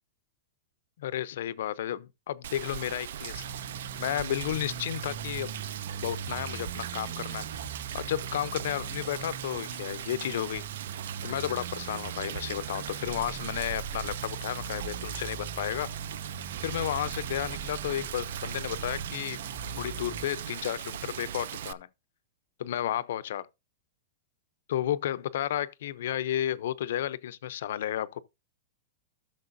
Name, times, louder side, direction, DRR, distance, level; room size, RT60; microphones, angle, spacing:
voice 1, 1.0-3.4 4.0-5.5 6.0-7.5 7.9-10.6 11.2-15.9 16.6-19.4 19.7-21.9 22.6-23.5 24.7-28.2, left 11 dB, 65° left, 0.5 m, -32 dB
Rain, 2.4-21.7, right 10 dB, 70° right, 0.4 m, -39 dB
sound 1, 3.3-20.3, right 6 dB, 45° right, 2.0 m, -41 dB
13.5 x 6.6 x 2.6 m
supercardioid pair, 170°, 0 cm